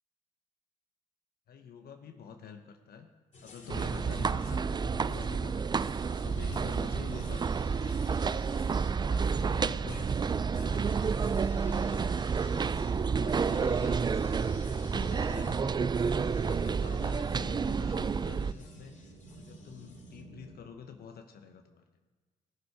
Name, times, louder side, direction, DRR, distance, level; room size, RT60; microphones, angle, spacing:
voice 1, 1.5-3.1 3.4-8.6 9.0-11.0 11.4-12.2 12.7-19.0 19.3-21.9, left 6 dB, 65° left, 5 dB, 1.1 m, -47 dB
sound 1, 3.3-20.2, left 3 dB, 45° left, 3.2 m, -54 dB
sound 2, 3.7-18.5, right 5 dB, 25° right, 0.4 m, -30 dB
sound 3, 15.4-20.6, right 2 dB, 70° right, 1.8 m, -52 dB
17.0 x 6.6 x 4.9 m, 1.3 s
supercardioid pair, 55°, 17 cm